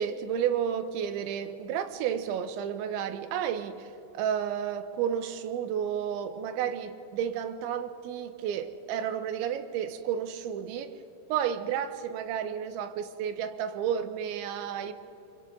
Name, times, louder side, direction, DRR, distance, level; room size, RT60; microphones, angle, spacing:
voice 1, 0.0-10.9 11.3-14.9, right 8 dB, 85° right, 3.2 m, -31 dB
29.5 x 25.5 x 3.9 m
omnidirectional pair, 5.2 m